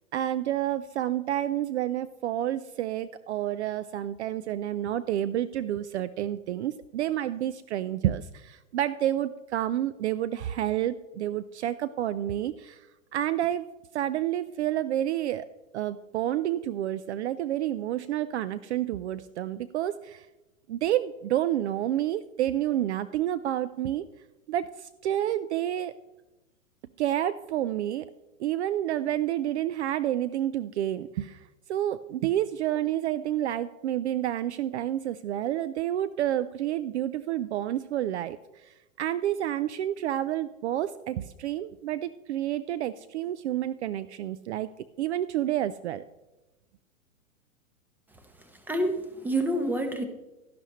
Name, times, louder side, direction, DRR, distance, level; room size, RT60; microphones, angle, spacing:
voice 1, 0.1-12.9 13.1-13.6 13.9-15.5 15.7-20.3 20.7-24.0 24.5-25.9 27.0-28.1 28.4-44.7 45.0-46.0, right 12 dB, 55° right, 15 dB, 0.5 m, -29 dB
voice 2, 48.7-50.1, right 1 dB, 5° right, 6 dB, 1.0 m, -27 dB
12.5 x 11.0 x 3.1 m, 1.0 s
hypercardioid pair, 115°, 42 cm